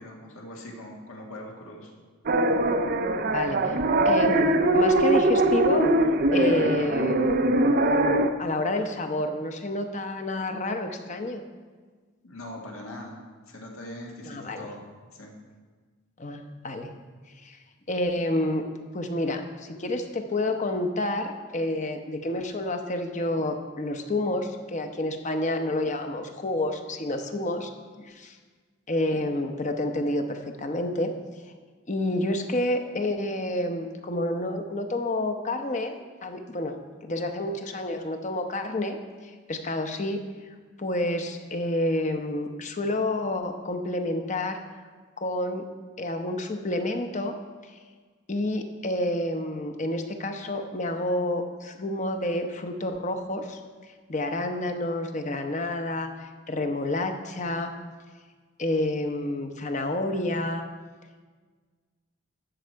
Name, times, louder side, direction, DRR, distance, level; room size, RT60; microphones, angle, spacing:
voice 1, 0.0-1.9 12.2-13.2 13.5-14.8 15.1-15.3, left 1 dB, 85° left, 0 dB, 1.9 m, -41 dB
sound 1, 2.3-8.3, right 2 dB, 45° right, 0.5 m, -22 dB
voice 2, 3.3-3.8 4.0-4.4 4.7-5.9 6.3-7.2 8.4-11.4 14.3-14.7 16.2-16.9 17.4-17.6 17.9-18.6 18.9-27.7 28.0-28.4 28.9-31.1 31.9-36.7 37.0-40.2 40.8-44.6 45.2-45.7 46.0-47.3 48.3-53.6 54.1-57.7 58.6-60.6, left 1 dB, 35° left, 6 dB, 0.8 m, -29 dB
12.5 x 7.6 x 4.6 m, 1.5 s
head